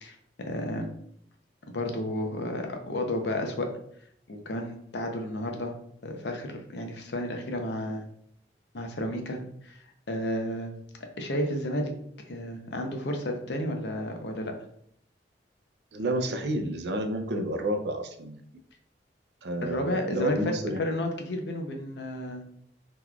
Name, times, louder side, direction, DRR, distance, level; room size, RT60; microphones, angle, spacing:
voice 1, 0.0-0.9 1.7-3.7 4.3-5.7 6.0-8.0 8.7-9.8 10.1-10.7 11.2-11.9 12.3-14.5 19.6-22.4, left 1 dB, 70° left, 4 dB, 0.6 m, -32 dB
voice 2, 15.9-18.4 19.4-20.8, right 1 dB, 65° right, 6 dB, 0.4 m, -30 dB
3.8 x 3.0 x 2.3 m, 0.68 s
head